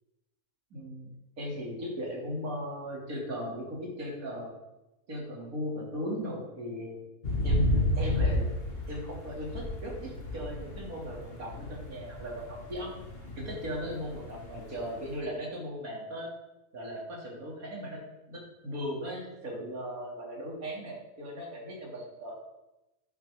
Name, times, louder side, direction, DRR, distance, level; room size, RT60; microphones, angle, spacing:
voice 1, 0.7-1.1 1.4-4.5 5.1-7.0 7.4-8.5 8.9-12.9 13.4-16.3 16.7-18.0 18.3-22.5, equal, 70° right, -3 dB, 3.3 m, -37 dB
sound 1, 7.2-15.1, left 1 dB, 40° left, 1.9 m, -32 dB
10.5 x 10.5 x 3.7 m, 0.98 s
omnidirectional pair, 1.6 m